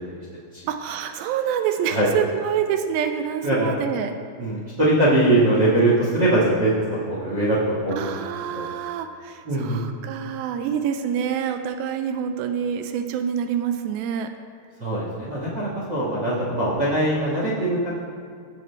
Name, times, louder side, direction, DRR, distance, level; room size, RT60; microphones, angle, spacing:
voice 1, 0.7-4.1 7.9-14.3, right 8 dB, 85° right, 7 dB, 2.1 m, -27 dB
voice 2, 3.4-3.7 4.4-8.1 8.5-8.6 9.4-9.8 14.8-17.9, right 1 dB, 60° right, -5 dB, 1.1 m, -22 dB
17.0 x 7.1 x 3.4 m, 2.2 s
omnidirectional pair, 4.8 m